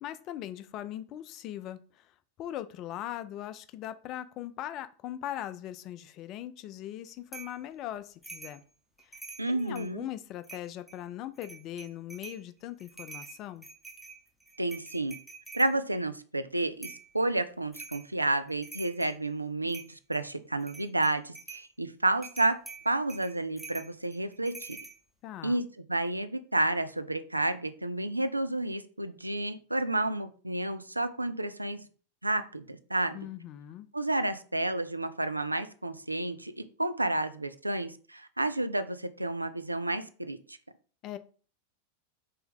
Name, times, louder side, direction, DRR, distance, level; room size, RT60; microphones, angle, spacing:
voice 1, 0.0-2.1 2.4-8.6 9.5-13.7 25.2-25.6 33.1-33.9 41.0-41.2, left 12 dB, 35° left, 0.3 m, -40 dB
sound 1, 7.3-7.6 8.2-8.6 9.0-9.9 10.4-11.0 11.4-12.4 12.8-15.7 16.8-17.1 17.7-18.1 18.5-19.2 19.7-20.2 20.6-21.7 22.2-25.0, right 4 dB, ahead, 0.8 m, -46 dB
voice 2, 9.4-10.0 14.6-15.2 15.5-22.6 22.9-24.8 25.4-31.9 32.2-33.3 33.9-36.5 36.8-40.6, right 2 dB, 85° right, 0.3 m, -31 dB
3.5 x 2.8 x 3.6 m
figure-of-eight pair, 90°, 0 cm